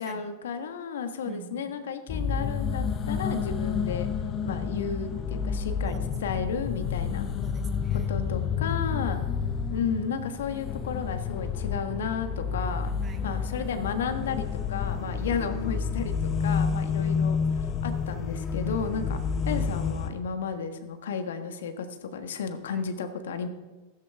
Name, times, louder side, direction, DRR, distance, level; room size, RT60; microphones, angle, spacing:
voice 1, 0.0-4.1 4.4-7.3 7.9-9.2 9.7-12.9 13.2-23.5, left 6 dB, 70° left, 8 dB, 1.4 m, -33 dB
voice 2, 1.2-1.9 5.9-6.2 7.4-8.1 9.0-9.7 13.0-13.3 22.7-22.8, right 7 dB, 30° right, 9 dB, 1.5 m, -48 dB
sound 1, 2.1-20.1, left 6 dB, 35° left, 1.1 m, -29 dB
15.5 x 14.0 x 3.5 m, 1.2 s
hypercardioid pair, 95°, 0 cm